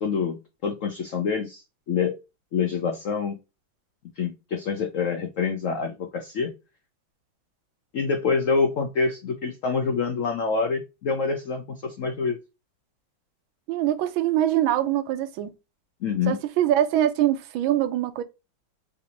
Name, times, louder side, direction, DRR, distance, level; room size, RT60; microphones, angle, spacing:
voice 1, 0.0-2.2 2.5-3.4 4.2-6.5 7.9-12.4 16.0-16.4, left 5 dB, 85° left, 0.6 m, -26 dB
voice 2, 13.7-15.5 16.3-18.2, right 12 dB, 90° right, 1.4 m, -23 dB
3.9 x 2.6 x 2.8 m
omnidirectional pair, 2.1 m